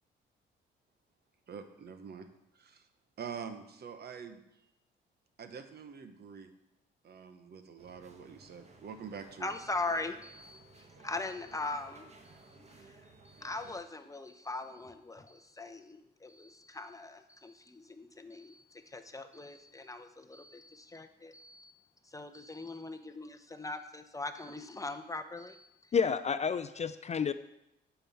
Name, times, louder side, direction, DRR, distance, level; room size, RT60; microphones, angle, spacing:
voice 1, 1.5-2.3 2.5-2.9 3.2-4.4 5.4-6.5 7.0-9.5, right 6 dB, 55° right, 8 dB, 1.1 m, -45 dB
sound 1, 7.8-13.7, right 3 dB, 35° right, 1.5 m, -57 dB
voice 2, 9.4-13.0 13.2-21.7 22.0-25.9, left 2 dB, 15° left, 7 dB, 0.8 m, -41 dB
voice 3, 25.9-27.3, left 6 dB, 35° left, 12 dB, 0.4 m, -30 dB
9.0 x 4.7 x 7.1 m, 0.84 s
cardioid pair, 90°, 20 cm